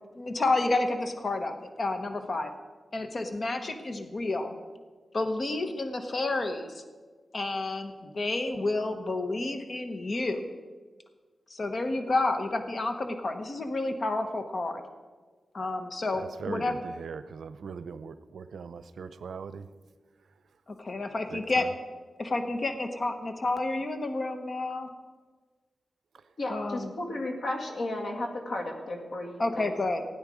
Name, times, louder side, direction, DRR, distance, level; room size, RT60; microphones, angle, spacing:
voice 1, 0.1-2.5 2.9-4.6 5.1-6.8 7.3-10.4 11.5-14.8 15.5-16.8 20.7-21.7 22.2-24.9 26.5-26.9 29.4-30.0, left 2 dB, 45° left, 7 dB, 1.1 m, -30 dB
voice 2, 16.1-19.7 21.3-21.7, right 5 dB, 90° right, 13 dB, 0.6 m, -40 dB
voice 3, 26.4-29.7, left 1 dB, 70° left, 1 dB, 2.2 m, -34 dB
17.0 x 9.0 x 5.0 m, 1.4 s
wide cardioid pair, 125°, 0 cm